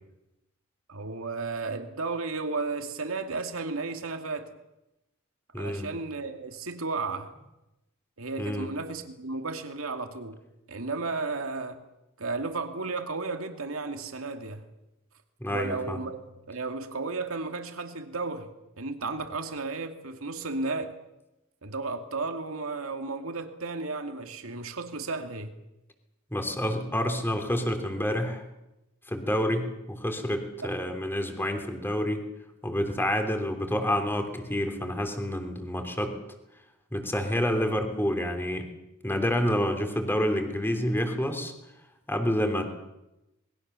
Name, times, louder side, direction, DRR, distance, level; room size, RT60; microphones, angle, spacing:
voice 1, 0.9-4.5 5.6-7.3 8.2-10.4 10.7-11.8 12.2-14.7 15.5-18.5 18.8-20.9 21.6-25.6 30.6-30.7, right 3 dB, 70° right, 6 dB, 2.5 m, -33 dB
voice 2, 5.5-5.9 8.4-8.7 15.4-16.0 26.3-28.4 29.1-32.2 32.6-36.1 36.9-38.7 39.0-41.5 42.1-42.7, equal, 10° left, 6 dB, 3.3 m, -28 dB
27.0 x 21.0 x 7.0 m, 0.92 s
head